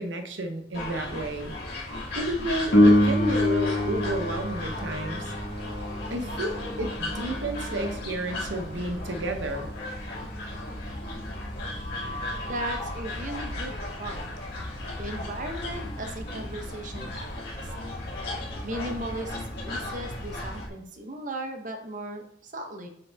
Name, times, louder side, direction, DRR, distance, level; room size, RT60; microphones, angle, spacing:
voice 1, 0.0-1.5 2.1-5.3 6.1-9.7, right 1 dB, 75° right, 5 dB, 0.9 m, -31 dB
sound 1, 0.7-20.7, left 1 dB, 55° left, 2.5 m, -36 dB
Piano, 2.7-13.1 20.7-20.8, left 1 dB, 75° left, 1.3 m, -27 dB
voice 2, 11.9-14.3 15.0-17.7 18.6-22.9, right 1 dB, 40° right, 4 dB, 0.9 m, -37 dB
8.4 x 3.9 x 3.4 m, 0.71 s
head